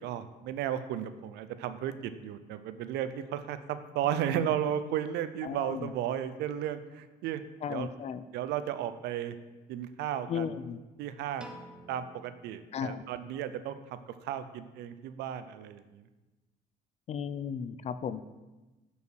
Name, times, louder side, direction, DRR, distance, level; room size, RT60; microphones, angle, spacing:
voice 1, 0.0-7.4 7.7-7.9 8.3-9.3 9.7-10.5 11.0-11.5 11.9-13.8 14.2-16.0, right 10 dB, 80° right, 11 dB, 0.5 m, -34 dB
voice 2, 5.4-5.9 7.6-8.2 10.3-10.8 12.7-13.0 17.1-18.2, left 7 dB, 40° left, 13 dB, 0.4 m, -35 dB
Piano, 11.4-13.7, right 1 dB, 5° right, 0.7 m, -52 dB
5.4 x 4.8 x 6.2 m, 1.1 s
cardioid pair, 110°, 17 cm